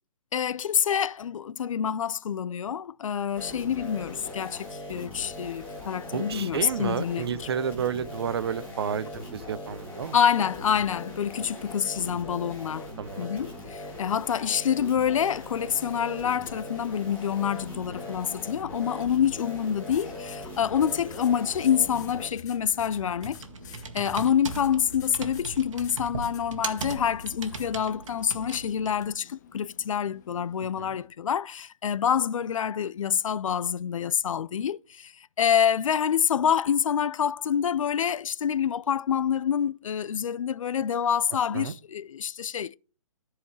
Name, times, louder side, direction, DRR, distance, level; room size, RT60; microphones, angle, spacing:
voice 1, 0.3-7.3 10.1-12.9 13.2-23.4 23.9-35.1 35.4-42.8, left 8 dB, 70° left, 0.5 m, -27 dB
sound 1, 3.3-22.3, left 1 dB, 10° left, 3.0 m, -40 dB
voice 2, 6.1-10.2 13.0-13.3 30.8-31.0 41.5-41.7, right 7 dB, 50° right, 0.6 m, -31 dB
sound 2, 16.3-31.1, left 8 dB, 30° left, 0.7 m, -49 dB
Computer keyboard, 22.1-29.1, right 4 dB, 65° right, 1.7 m, -39 dB
14.0 x 4.8 x 3.2 m
hypercardioid pair, 165°, 18 cm